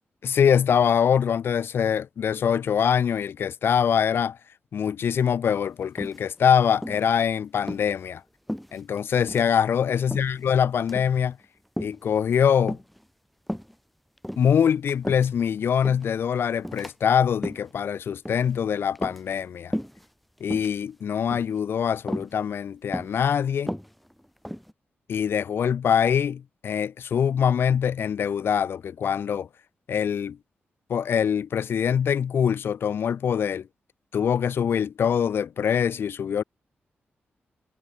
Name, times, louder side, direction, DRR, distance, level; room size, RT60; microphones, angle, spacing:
voice 1, 0.2-4.4 4.7-8.2 8.7-11.4 11.8-12.8 14.4-19.7 20.4-23.7 25.1-29.5 29.9-30.4 30.9-33.7 34.1-36.4, left 8 dB, 70° left, 0.8 m, -24 dB
sound 1, 6.0-6.5 6.8-7.1 7.6-7.9 8.5-9.0 9.3-9.5 10.1-10.5 10.8-11.2 11.8-12.1 12.7-13.0 13.5-13.7 14.2-15.5 15.8-16.1 16.6-16.9 17.3-17.7 18.3-18.5 19.0-19.5 19.7-20.1 20.4-20.8 21.3-21.6 22.1-22.3 22.9-23.2 23.6-24.7, equal, ahead, 0.6 m, -34 dB
wide cardioid pair, 130°, 4 cm